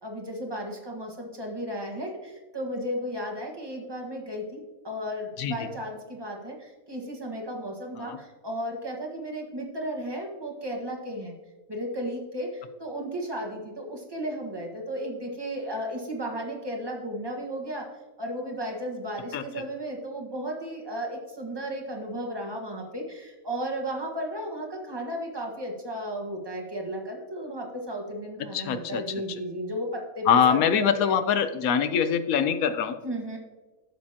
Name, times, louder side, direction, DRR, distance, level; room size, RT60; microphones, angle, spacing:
voice 1, 0.0-11.4 11.7-17.9 18.2-31.2 33.0-33.4, equal, 20° right, 0 dB, 1.5 m, -34 dB
voice 2, 28.5-29.0 30.3-33.0, left 7 dB, 85° left, 11 dB, 1.2 m, -24 dB
11.5 x 7.5 x 2.8 m, 1.3 s
omnidirectional pair, 1.5 m